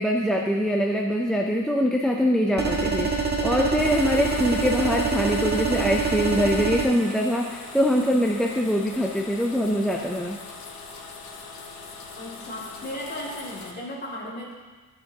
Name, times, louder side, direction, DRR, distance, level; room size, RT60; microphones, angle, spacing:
voice 1, 0.0-10.4, equal, ahead, 0 dB, 0.4 m, -23 dB
sound 1, 2.6-6.9, right 4 dB, 30° right, 1.2 m, -25 dB
sound 2, 3.8-13.7, left 4 dB, 75° left, 1.5 m, -41 dB
voice 2, 12.2-14.5, left 1 dB, 30° left, -5 dB, 2.3 m, -35 dB
14.0 x 7.8 x 2.8 m, 1.4 s
wide cardioid pair, 155°, 36 cm